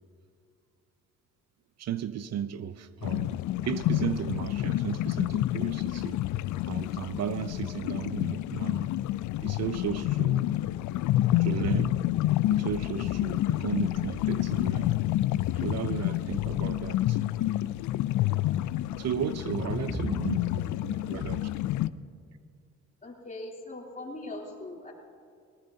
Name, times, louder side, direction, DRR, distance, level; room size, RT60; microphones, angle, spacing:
voice 1, 1.8-3.4 3.6-6.2 6.7-8.9 9.4-10.4 11.4-12.0 12.5-15.0 15.5-17.2 19.0-20.4 20.8-21.4, right 9 dB, 60° right, 13 dB, 0.6 m, -34 dB
sound 1, 3.0-21.9, left 14 dB, 75° left, 0.4 m, -28 dB
voice 2, 19.9-20.3 20.9-21.0 21.9-22.0 23.0-24.9, left 1 dB, 25° left, -2 dB, 3.2 m, -38 dB
20.5 x 18.5 x 2.8 m, 2.3 s
cardioid pair, 90°, 30 cm